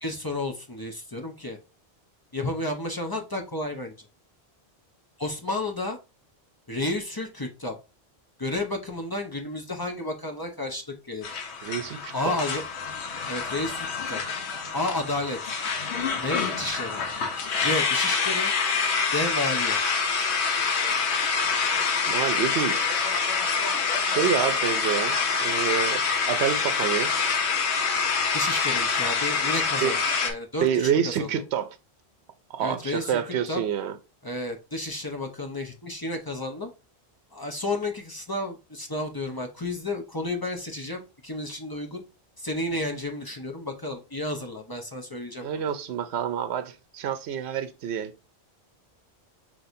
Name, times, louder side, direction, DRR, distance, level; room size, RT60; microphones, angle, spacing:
voice 1, 0.0-1.6 2.3-4.0 5.2-6.0 6.7-7.8 8.4-11.3 12.1-12.6 13.3-14.2 14.7-15.4 16.1-17.0 17.6-18.5 19.1-19.8 28.3-31.3 32.6-33.2 33.5-33.6 34.2-36.7 37.3-42.0 42.4-45.5, left 2 dB, 25° left, 0.6 m, -31 dB
sound 1, 11.2-30.3, left 5 dB, 85° left, 1.1 m, -26 dB
voice 2, 11.6-12.4 22.1-22.9 24.0-27.1 29.8-30.0 30.6-31.8 32.5-34.0 45.4-48.1, right 8 dB, 80° right, 0.9 m, -28 dB
6.0 x 3.1 x 2.6 m
omnidirectional pair, 1.1 m